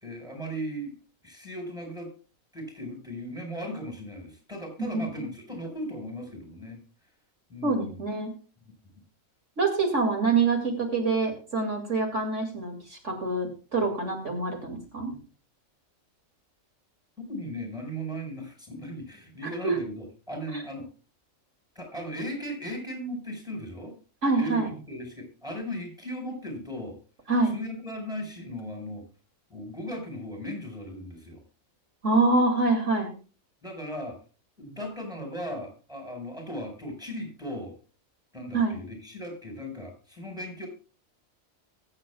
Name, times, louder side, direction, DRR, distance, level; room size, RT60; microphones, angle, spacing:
voice 1, 0.0-1.0 1.2-2.1 2.5-6.8 7.5-8.0 17.2-20.9 21.7-24.0 24.4-27.0 27.5-29.0 29.5-31.4 33.6-34.2 34.6-37.8 38.3-40.7, equal, 5° right, 3 dB, 4.9 m, -37 dB
voice 2, 7.6-8.3 9.6-15.2 19.6-19.8 20.5-20.6 24.2-24.7 27.3-27.6 32.0-33.1 38.5-38.8, right 3 dB, 60° right, 2 dB, 2.6 m, -25 dB
22.5 x 7.7 x 2.3 m, 0.35 s
omnidirectional pair, 1.4 m